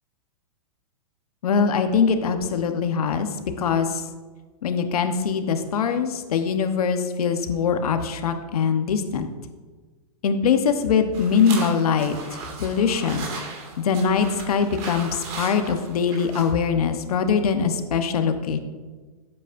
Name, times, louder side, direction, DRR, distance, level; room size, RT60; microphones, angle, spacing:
voice 1, 1.4-3.3 3.6-4.0 4.6-9.3 10.2-12.2 12.6-13.3 13.8-18.6, left 6 dB, 75° left, 7 dB, 1.1 m, -22 dB
sound 1, 11.1-16.5, right 4 dB, 40° right, 2.3 m, -37 dB
12.0 x 8.4 x 2.6 m, 1.4 s
hypercardioid pair, 140°, 19 cm